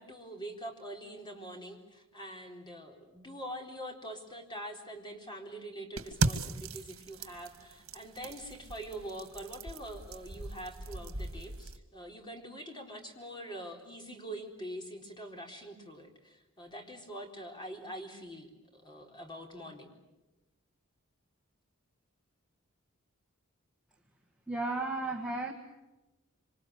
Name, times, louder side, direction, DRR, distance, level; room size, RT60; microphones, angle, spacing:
voice 1, 0.0-20.0, right 1 dB, 20° left, 2 dB, 4.0 m, -44 dB
sound 1, 6.0-11.8, right 3 dB, 80° right, 2.1 m, -37 dB
voice 2, 24.5-25.5, right 2 dB, 5° right, 0 dB, 1.9 m, -33 dB
26.5 x 26.0 x 8.1 m, 1.1 s
head